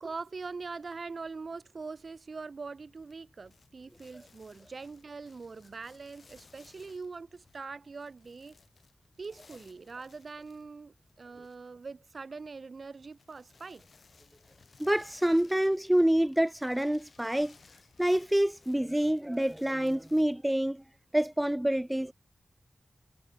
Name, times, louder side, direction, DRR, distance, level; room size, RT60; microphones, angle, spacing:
voice 1, 0.0-8.6 9.2-13.8, right 4 dB, 55° right, 0.9 m, -43 dB
sound 1, 2.8-20.7, left 4 dB, 65° left, 6.3 m, -62 dB
voice 2, 14.8-17.5 18.0-20.8 21.1-22.1, right 1 dB, 10° right, 0.3 m, -27 dB
wide cardioid pair, 105°, 0 cm